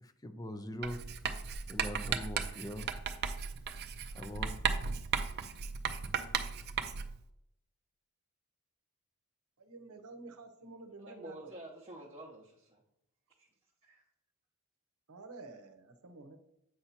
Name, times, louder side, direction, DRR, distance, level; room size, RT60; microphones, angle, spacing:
voice 1, 0.0-1.0 1.7-2.9 4.1-4.8, left 1 dB, 15° left, 9 dB, 0.5 m, -42 dB
Writing, 0.8-7.2, right 6 dB, 50° right, 0.5 m, -36 dB
voice 2, 9.6-11.5 15.1-16.4, right 3 dB, 80° right, 8 dB, 0.8 m, -50 dB
voice 3, 11.1-12.8 13.4-13.5 13.8-14.0, right 1 dB, 30° right, -4 dB, 0.9 m, -49 dB
7.9 x 2.8 x 5.7 m, 0.78 s
head